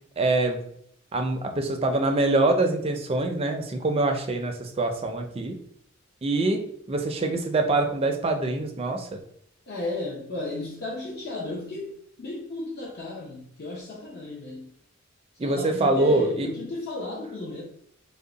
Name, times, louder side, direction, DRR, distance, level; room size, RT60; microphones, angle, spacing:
voice 1, 0.2-0.6 1.1-5.6 6.2-9.2 15.4-16.5, right 2 dB, 30° right, 5 dB, 0.4 m, -25 dB
voice 2, 9.7-11.9 12.2-14.7 15.4-17.6, left 2 dB, 50° left, -3 dB, 0.6 m, -34 dB
3.5 x 2.1 x 3.9 m, 0.67 s
head